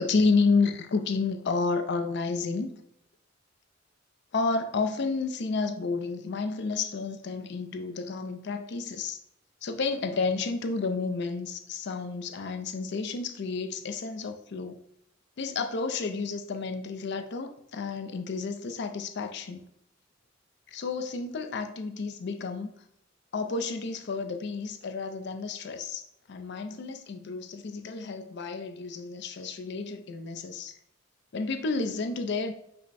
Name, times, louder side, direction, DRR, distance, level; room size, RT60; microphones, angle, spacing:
voice 1, 0.0-2.7 4.3-9.2 9.6-14.8 15.4-19.6 20.7-22.7 23.3-30.7 31.3-32.5, left 4 dB, 60° left, 6 dB, 0.5 m, -30 dB
5.6 x 2.1 x 4.1 m, 0.76 s
head